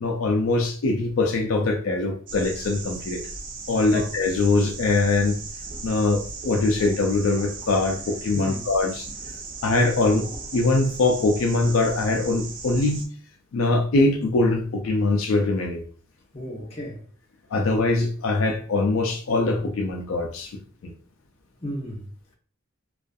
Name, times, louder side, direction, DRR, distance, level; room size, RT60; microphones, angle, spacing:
voice 1, 0.0-3.2 3.7-5.4 5.8-9.1 9.6-10.3 10.5-13.1 13.5-15.8 17.5-20.5, left 3 dB, 80° left, 0.4 m, -22 dB
sound 1, 2.3-13.1, right 4 dB, 40° right, 0.5 m, -37 dB
voice 2, 16.3-17.0 21.6-22.0, equal, 30° left, 0.8 m, -33 dB
2.5 x 2.4 x 2.2 m
head